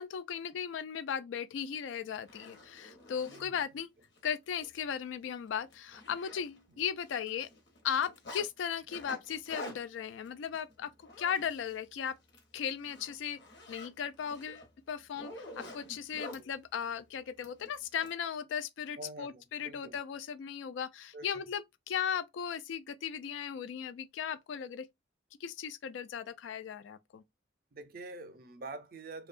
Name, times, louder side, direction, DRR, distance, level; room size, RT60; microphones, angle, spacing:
voice 1, 0.0-3.9 4.2-7.5 7.8-10.9 11.2-12.1 12.5-13.4 13.7-24.9 25.4-27.2, left 8 dB, 75° left, 0.3 m, -37 dB
Zipper (clothing), 1.6-1.7 2.1-3.4 4.0-4.2 4.5-4.7 5.0-5.1 5.5-6.8 7.0-8.5 8.9-11.8 12.2-12.4 12.8-16.4 17.4-18.1, left 1 dB, 60° left, 0.9 m, -48 dB
voice 2, 19.0-20.0 21.1-21.4 27.7-29.3, right 2 dB, 50° right, 0.4 m, -46 dB
2.7 x 2.2 x 2.4 m
head